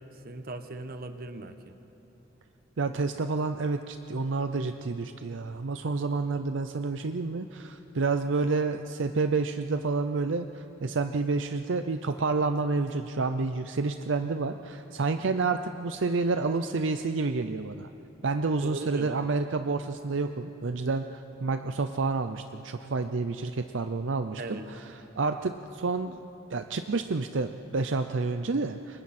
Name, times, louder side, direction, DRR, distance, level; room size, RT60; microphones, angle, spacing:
voice 1, 0.1-1.7 18.6-19.3 24.4-24.7, right 2 dB, 50° right, 9 dB, 1.1 m, -39 dB
voice 2, 2.8-17.9 18.2-26.2 26.5-29.0, right 3 dB, 70° right, 8 dB, 0.6 m, -29 dB
28.5 x 23.0 x 4.3 m, 3.0 s
head